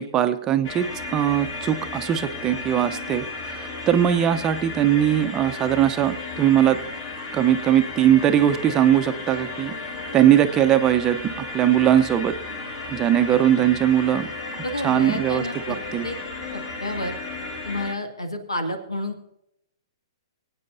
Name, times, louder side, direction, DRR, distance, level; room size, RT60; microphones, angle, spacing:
voice 1, 0.0-6.8 7.3-9.7 10.1-12.3 12.9-14.3 14.8-16.1, right 11 dB, 20° right, 8 dB, 0.8 m, -20 dB
sound 1, 0.6-17.9, left 3 dB, 45° left, 3.4 m, -34 dB
voice 2, 14.6-15.8 16.0-16.2 16.5-17.2 17.6-19.2, left 1 dB, 80° left, 6 dB, 2.1 m, -30 dB
22.5 x 8.9 x 2.7 m, 0.81 s
figure-of-eight pair, 115°, 3 cm